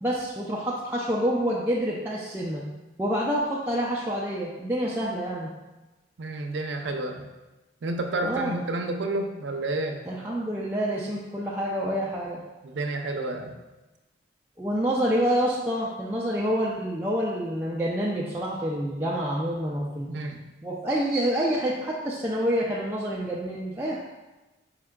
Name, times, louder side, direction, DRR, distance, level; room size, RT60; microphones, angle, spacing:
voice 1, 0.0-2.6 3.0-5.5 8.2-8.5 10.1-12.4 14.6-20.2 20.6-24.0, equal, 10° right, -5 dB, 0.3 m, -27 dB
voice 2, 6.2-7.3 7.8-10.0 12.6-13.5 20.1-20.4, right 2 dB, 75° right, 4 dB, 0.5 m, -30 dB
4.7 x 4.2 x 2.2 m, 1.1 s
head